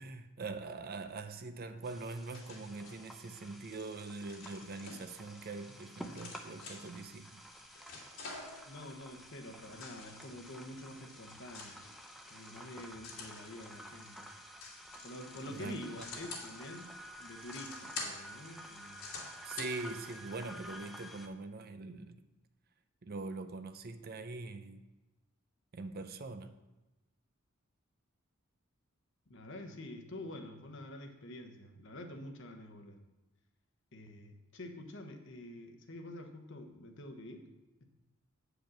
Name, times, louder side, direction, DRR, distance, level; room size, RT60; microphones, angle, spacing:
voice 1, 0.0-7.4 15.5-16.1 19.4-22.2 23.0-24.8 25.7-26.5, right 3 dB, 45° right, 0.6 m, -43 dB
sound 1, 1.8-21.3, equal, ahead, 0.6 m, -51 dB
sound 2, 1.9-20.2, left 3 dB, 85° left, 2.3 m, -50 dB
voice 2, 8.7-11.8 12.3-14.2 15.0-19.0 29.3-33.0 33.9-37.5 37.8-37.9, left 1 dB, 60° left, 1.1 m, -47 dB
8.9 x 5.0 x 6.3 m
head